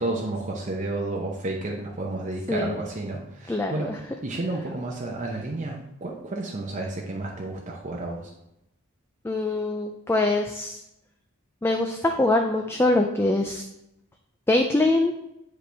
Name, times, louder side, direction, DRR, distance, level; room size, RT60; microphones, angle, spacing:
voice 1, 0.0-3.9 4.2-8.3, right 2 dB, 35° right, -1 dB, 0.7 m, -31 dB
voice 2, 2.5-2.8 3.5-4.0 9.2-10.8 11.6-13.6 14.5-15.1, left 2 dB, 10° left, 3 dB, 0.4 m, -23 dB
8.0 x 5.0 x 3.4 m, 0.86 s
head